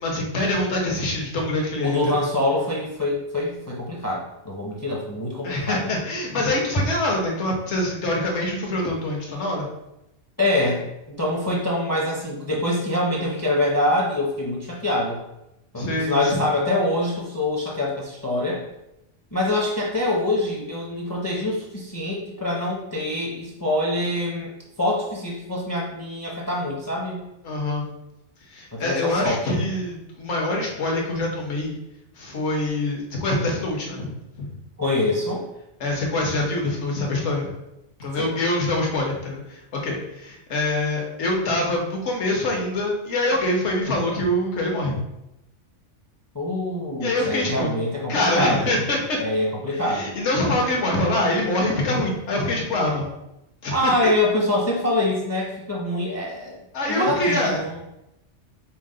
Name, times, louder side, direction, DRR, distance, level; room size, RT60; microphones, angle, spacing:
voice 1, 0.0-2.2 5.4-9.7 15.8-16.5 27.4-27.8 28.5-31.8 32.2-34.5 35.8-37.5 38.0-45.0 47.0-47.7 48.1-49.2 49.7-53.1 53.6-53.9 56.7-57.7, left 1 dB, 70° left, -1 dB, 1.2 m, -25 dB
voice 2, 1.8-5.9 10.4-10.9 11.2-15.2 15.7-18.7 19.3-24.5 24.8-27.2 28.7-29.6 34.8-35.4 38.2-38.3 46.3-48.8 49.2-50.2 53.7-56.6 56.9-57.8, left 1 dB, 25° left, -2 dB, 0.5 m, -25 dB
5.6 x 2.0 x 3.7 m, 0.88 s
omnidirectional pair, 1.2 m